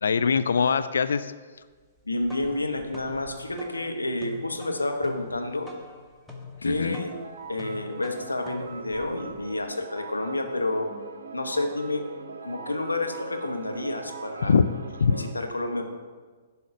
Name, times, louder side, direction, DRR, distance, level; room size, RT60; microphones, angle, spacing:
voice 1, 0.0-1.3 6.6-7.0 14.5-14.6 15.0-15.1, left 6 dB, 70° left, 12 dB, 0.3 m, -22 dB
Btayhi Msarref Rhythm, 2.0-9.7, left 3 dB, ahead, 1.1 m, -45 dB
voice 2, 2.1-5.7 6.6-7.1 7.5-10.9 11.3-12.0 12.4-14.5 15.1-15.9, left 2 dB, 85° left, 4 dB, 1.0 m, -29 dB
sound 1, 6.8-15.3, right 4 dB, 65° right, 0.9 m, -40 dB
11.0 x 4.2 x 5.1 m, 1.4 s
figure-of-eight pair, 120°, 0 cm